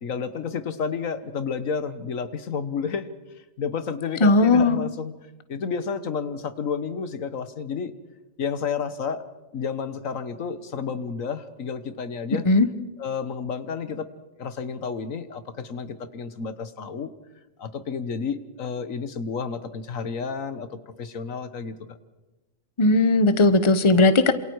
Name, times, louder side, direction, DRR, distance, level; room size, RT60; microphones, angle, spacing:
voice 1, 0.0-3.1 3.6-5.1 5.5-7.9 8.4-9.2 9.5-12.4 13.0-14.1 14.4-17.1 17.6-20.7 21.0-22.0, left 6 dB, 80° left, 12 dB, 1.6 m, -31 dB
voice 2, 4.2-4.8 12.4-12.7 22.8-24.3, left 2 dB, 25° left, 12 dB, 1.0 m, -17 dB
27.5 x 27.0 x 4.7 m, 1.1 s
omnidirectional pair, 1.4 m